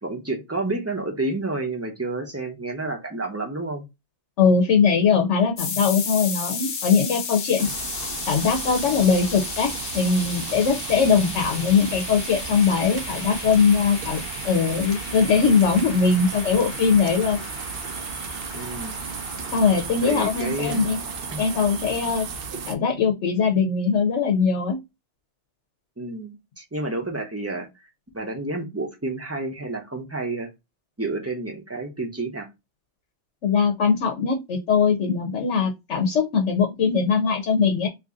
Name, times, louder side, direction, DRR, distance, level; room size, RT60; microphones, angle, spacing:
voice 1, 0.0-3.8 10.9-11.4 18.5-19.0 20.0-20.8 21.3-21.4 26.0-27.7 28.1-30.5 31.0-32.5, right 2 dB, 15° right, 0.7 m, -30 dB
voice 2, 4.4-7.7 8.3-17.4 19.5-21.0 21.4-22.3 22.7-24.8 33.4-37.9, left 5 dB, 85° left, 1.0 m, -21 dB
sound 1, 5.6-21.9, left 5 dB, 65° left, 0.9 m, -36 dB
sound 2, 7.6-22.7, right 5 dB, 60° right, 0.8 m, -34 dB
2.9 x 2.6 x 3.6 m
omnidirectional pair, 1.2 m